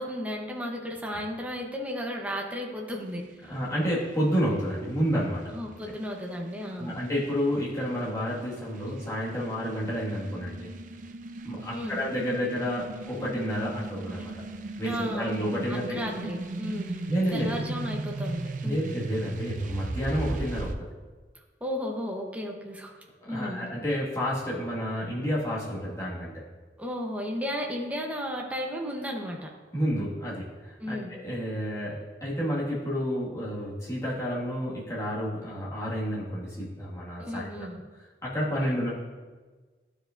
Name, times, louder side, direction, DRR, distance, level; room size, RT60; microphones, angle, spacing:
voice 1, 0.0-3.5 5.5-6.9 11.7-12.0 14.8-15.4 15.7-17.0 17.3-19.0 21.3-23.0 23.3-23.6 26.8-29.5 30.8-31.1 37.2-37.8, equal, 10° right, 0 dB, 0.9 m, -34 dB
sound 1, 2.9-20.7, right 2 dB, 45° right, 0.4 m, -38 dB
voice 2, 3.5-5.6 6.8-10.7 11.4-14.3 14.8-16.3 17.1-17.5 18.6-20.9 23.2-26.4 29.7-37.7 38.2-38.9, equal, 20° left, -7 dB, 1.9 m, -30 dB
11.5 x 5.0 x 2.6 m, 1.4 s
head